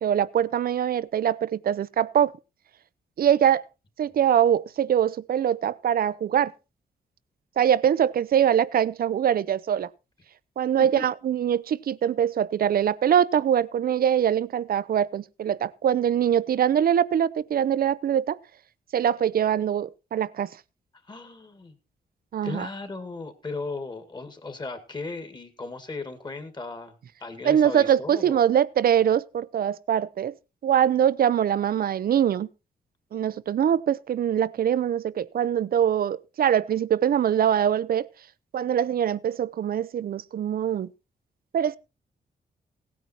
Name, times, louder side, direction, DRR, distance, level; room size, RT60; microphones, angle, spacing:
voice 1, 0.0-2.3 3.2-3.6 4.0-6.5 7.6-9.9 10.6-18.4 18.9-20.5 22.3-22.7 27.4-30.3 30.6-32.5 33.1-38.1 38.5-40.9 41.5-41.8, right 9 dB, 60° right, 0.6 m, -23 dB
voice 2, 21.1-21.7 22.4-27.0 27.2-28.4, left 3 dB, 25° left, 2.1 m, -36 dB
17.0 x 9.4 x 4.4 m
wide cardioid pair, 145°, 17 cm